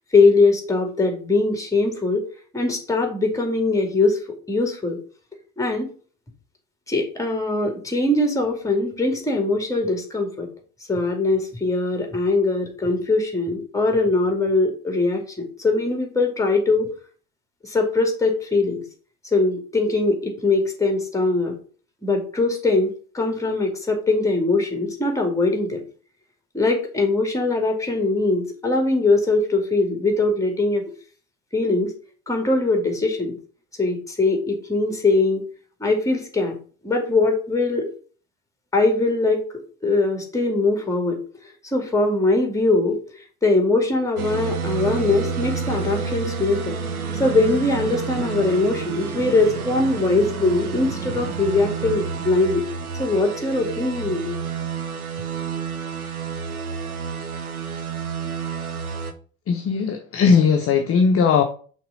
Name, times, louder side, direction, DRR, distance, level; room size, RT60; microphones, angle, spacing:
voice 1, 0.1-2.3 2.5-4.2 4.5-5.0 5.6-5.9 6.9-10.5 10.9-16.9 17.6-18.8 19.3-21.6 22.0-22.9 23.1-25.8 26.5-30.8 31.5-31.9 32.3-33.4 33.8-35.4 35.8-36.6 36.8-37.9 38.7-39.4 39.8-41.2 41.6-46.8 47.2-52.6 53.0-54.4, left 3 dB, 5° left, 3 dB, 2.3 m, -21 dB
sound 1, 44.2-59.1, right 5 dB, 80° right, 0.9 m, -29 dB
voice 2, 59.5-61.4, left 5 dB, 30° left, 4 dB, 0.9 m, -18 dB
5.9 x 3.7 x 5.3 m, 0.40 s
figure-of-eight pair, 65°, 43 cm